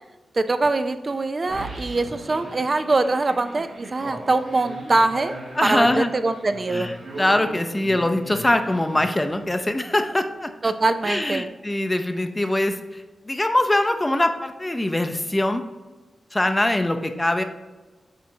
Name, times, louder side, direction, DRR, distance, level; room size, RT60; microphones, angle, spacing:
voice 1, 0.3-5.4 5.6-6.9 10.6-11.5, right 3 dB, 40° right, 10 dB, 0.3 m, -23 dB
sound 1, 1.5-9.8, right 1 dB, 80° right, 1.9 m, -38 dB
voice 2, 5.6-6.1 6.7-10.5 11.0-15.6 16.3-17.4, left 1 dB, 15° left, 7 dB, 0.5 m, -23 dB
8.5 x 4.1 x 2.7 m, 1.2 s
wide cardioid pair, 95°, 0 cm